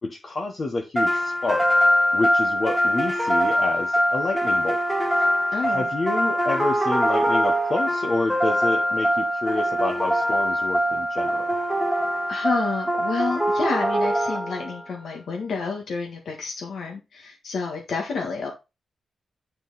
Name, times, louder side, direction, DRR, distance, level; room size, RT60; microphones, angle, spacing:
voice 1, 0.0-1.6 2.1-4.8 5.2-5.3 5.6-11.5, left 3 dB, 35° left, 2 dB, 1.0 m, -28 dB
sound 1, 1.0-14.8, equal, 5° right, 1.5 m, -23 dB
voice 2, 5.5-5.9 12.3-18.5, left 4 dB, 60° left, 0 dB, 1.6 m, -29 dB
9.5 x 4.5 x 4.1 m, 0.26 s
wide cardioid pair, 180°, 0 cm